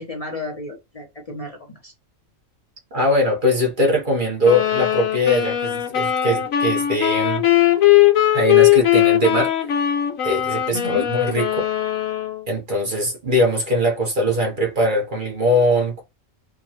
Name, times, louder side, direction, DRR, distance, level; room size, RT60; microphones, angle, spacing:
voice 1, 0.0-1.9 10.7-11.1, left 2 dB, 30° left, 0.8 m, -32 dB
voice 2, 2.9-7.4 8.3-9.5 10.2-11.7 12.5-16.0, left 1 dB, 40° right, 1.0 m, -21 dB
sound 1, 4.4-12.4, left 13 dB, 90° left, 1.1 m, -19 dB
4.6 x 2.3 x 2.8 m
omnidirectional pair, 1.4 m